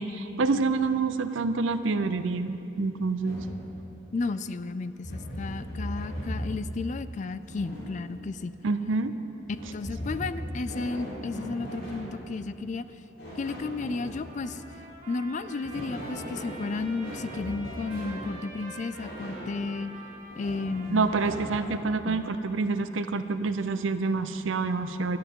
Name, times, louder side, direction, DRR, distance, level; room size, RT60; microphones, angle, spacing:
voice 1, 0.0-3.4 8.6-9.1 20.9-25.2, right 3 dB, 85° right, 11 dB, 0.6 m, -27 dB
sound 1, 3.2-3.6 5.0-6.7 7.4-8.2 9.5-12.2 13.2-14.3 15.4-18.3 18.9-19.5 20.3-21.7, equal, 75° left, 3.6 m, -38 dB
voice 2, 4.1-8.5 9.7-12.8 13.4-14.6 15.1-19.9 20.4-21.1 22.1-22.2, left 3 dB, 40° left, 13 dB, 0.4 m, -33 dB
Trumpet, 14.1-22.9, right 2 dB, 45° right, 2.0 m, -47 dB
17.0 x 12.0 x 3.8 m, 3.0 s
head